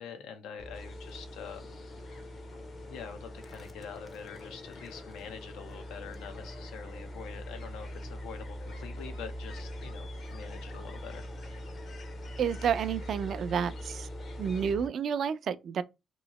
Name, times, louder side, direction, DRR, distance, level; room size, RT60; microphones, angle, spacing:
voice 1, 0.0-1.8 2.9-11.2, left 7 dB, 90° left, 0.7 m, -45 dB
sound 1, 0.6-14.9, equal, 30° left, 0.6 m, -42 dB
sound 2, 0.7-14.7, left 3 dB, 60° left, 1.0 m, -53 dB
voice 2, 12.4-14.1 14.4-15.8, right 7 dB, 60° right, 0.4 m, -30 dB
3.0 x 2.7 x 3.0 m
cardioid pair, 90°, 0 cm